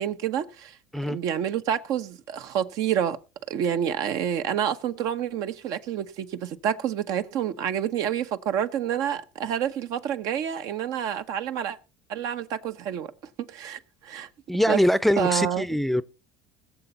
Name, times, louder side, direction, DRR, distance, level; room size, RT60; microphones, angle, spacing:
voice 1, 0.0-0.8 1.1-3.2 3.5-11.8 12.1-13.1 13.4-14.3 14.7-14.8 15.2-15.6, right 9 dB, 65° right, 1.0 m, -28 dB
voice 2, 14.5-16.0, equal, ahead, 0.6 m, -23 dB
20.5 x 6.9 x 3.9 m
supercardioid pair, 85°, 7 cm